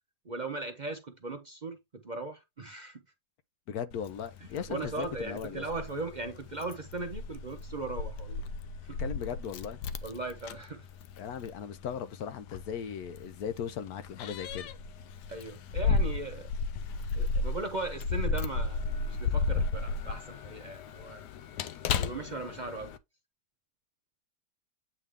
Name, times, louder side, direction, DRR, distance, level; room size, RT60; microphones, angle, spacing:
voice 1, 0.2-3.0 4.5-8.4 8.8-9.0 10.0-10.9 15.3-16.5 17.1-21.3 22.0-22.9, right 3 dB, 45° right, 0.6 m, -38 dB
voice 2, 3.7-5.6 9.0-9.8 11.2-14.7, left 8 dB, 70° left, 1.1 m, -38 dB
Keys jangling, 3.9-23.0, left 4 dB, 90° left, 1.2 m, -34 dB
8.3 x 3.4 x 3.5 m
omnidirectional pair, 1.7 m